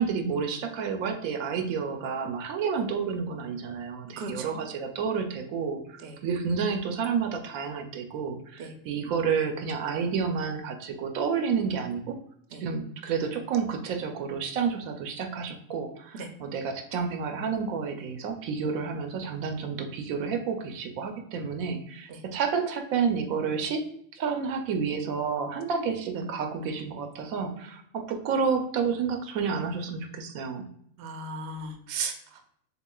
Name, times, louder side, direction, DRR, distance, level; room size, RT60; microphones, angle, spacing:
voice 1, 0.0-12.2 12.6-23.9 24.1-30.7, right 6 dB, 80° right, 6 dB, 1.0 m, -30 dB
voice 2, 4.2-4.6 6.0-6.2 8.6-8.7 12.5-12.6 16.1-16.3 22.1-22.2 31.0-32.5, right 4 dB, 60° right, 4 dB, 0.8 m, -36 dB
6.7 x 2.4 x 2.2 m, 0.67 s
omnidirectional pair, 1.4 m